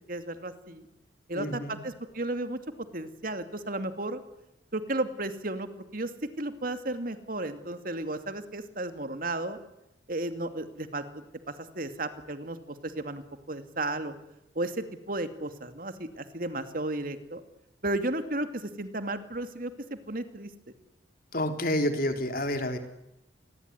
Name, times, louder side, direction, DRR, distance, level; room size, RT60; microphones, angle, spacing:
voice 1, 0.1-0.9 1.3-2.6 2.9-4.2 4.7-6.1 6.4-9.6 10.1-14.1 14.5-17.4 17.8-20.5, right 2 dB, 50° right, 9 dB, 2.5 m, -34 dB
voice 2, 1.3-1.8 21.3-22.8, left 1 dB, 50° left, 7 dB, 3.6 m, -29 dB
27.5 x 21.5 x 9.7 m, 0.86 s
head